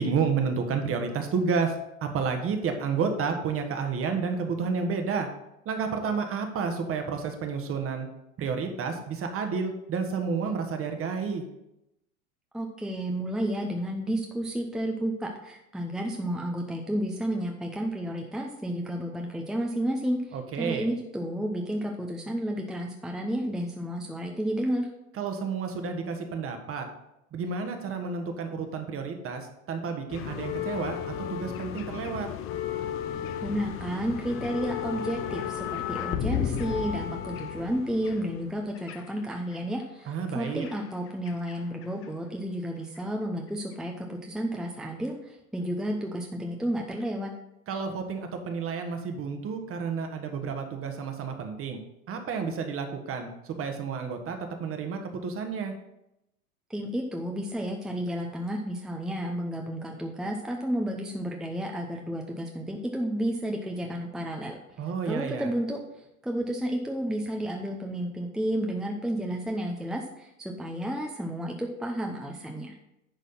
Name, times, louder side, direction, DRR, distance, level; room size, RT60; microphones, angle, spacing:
voice 1, 0.0-1.7 2.0-5.3 5.6-8.1 8.4-11.4 20.3-20.9 25.2-26.8 27.3-31.0 31.3-32.3 40.1-40.7 47.7-51.8 52.1-55.7 64.8-65.5, right 5 dB, 30° right, 5 dB, 1.4 m, -30 dB
voice 2, 12.5-24.9 33.4-47.3 56.7-64.6 65.0-65.8 66.2-72.7, equal, ahead, 1 dB, 0.7 m, -31 dB
sound 1, 30.1-39.6 40.4-41.6 41.8-42.0 43.0-43.1, left 9 dB, 30° left, 0.6 m, -34 dB
10.5 x 4.1 x 5.5 m, 0.87 s
hypercardioid pair, 90°, 42 cm